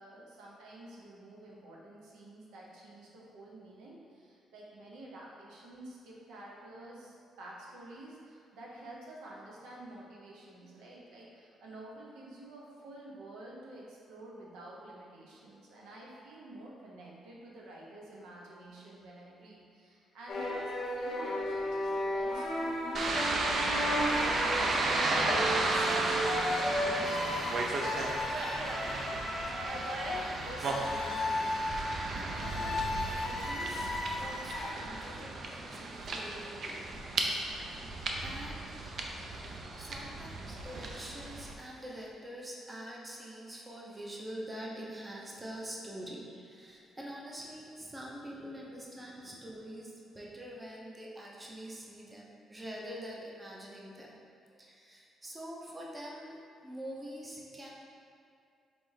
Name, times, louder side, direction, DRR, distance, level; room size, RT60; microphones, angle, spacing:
voice 1, 0.0-25.4, right 1 dB, 85° right, -4 dB, 0.8 m, -50 dB
sound 1, 20.3-34.7, left 1 dB, 55° left, 0.7 m, -35 dB
sound 2, 22.9-41.5, right 2 dB, 55° right, 0.5 m, -34 dB
voice 2, 30.0-31.5 32.1-32.8 33.1-33.9 34.2-37.1 38.2-38.6 39.7-54.2 54.5-57.7, equal, 15° right, -3 dB, 0.7 m, -45 dB
4.1 x 3.4 x 3.2 m, 2.4 s
cardioid pair, 90°, 0 cm